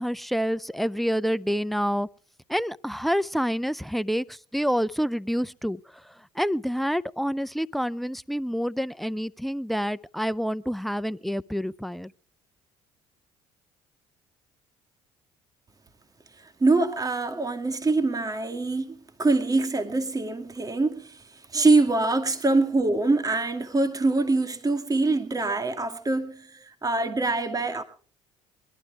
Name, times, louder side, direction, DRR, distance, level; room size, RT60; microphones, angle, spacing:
voice 1, 0.0-2.1 2.5-12.1, equal, ahead, 0.6 m, -28 dB
voice 2, 16.6-21.2 21.5-27.8, right 3 dB, 25° right, 2.3 m, -24 dB
21.5 x 12.0 x 4.7 m
hypercardioid pair, 60°, 15 cm